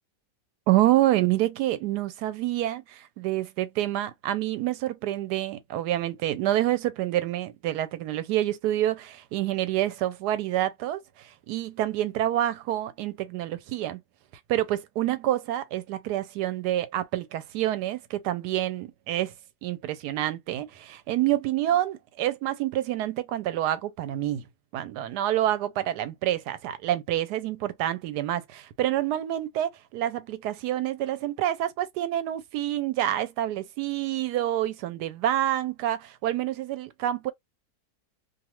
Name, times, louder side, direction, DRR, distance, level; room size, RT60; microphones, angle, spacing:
voice 1, 0.7-14.0 14.5-19.3 19.6-24.4 24.7-37.3, right 13 dB, 90° right, 1.1 m, -27 dB
2.6 x 2.4 x 2.9 m
omnidirectional pair, 1.7 m